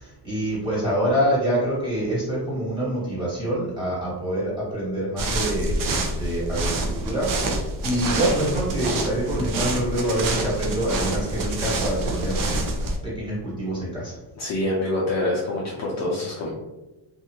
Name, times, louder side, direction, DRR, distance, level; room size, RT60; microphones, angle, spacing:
voice 1, 0.0-12.4 13.0-14.2, equal, 10° right, -7 dB, 1.4 m, -26 dB
sound 1, 5.2-13.0, right 2 dB, 45° right, 0.6 m, -27 dB
voice 2, 14.4-16.5, left 1 dB, 35° left, -5 dB, 0.6 m, -26 dB
2.7 x 2.4 x 2.8 m, 1.0 s
cardioid pair, 130°, 46 cm